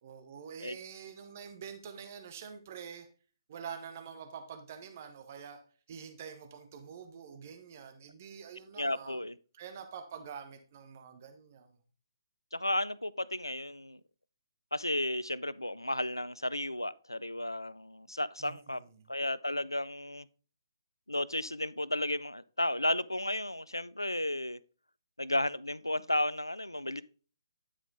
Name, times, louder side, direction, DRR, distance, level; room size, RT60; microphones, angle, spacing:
voice 1, 0.0-3.1 3.5-5.6 5.9-9.2 9.5-11.8 18.4-19.1, right 7 dB, 35° right, 1.0 m, -46 dB
voice 2, 8.8-9.3 12.5-14.0 14.7-18.8 19.1-20.3 21.1-24.6 25.2-27.0, left 1 dB, 85° left, 0.4 m, -33 dB
9.9 x 4.9 x 3.8 m
figure-of-eight pair, 135°, 2 cm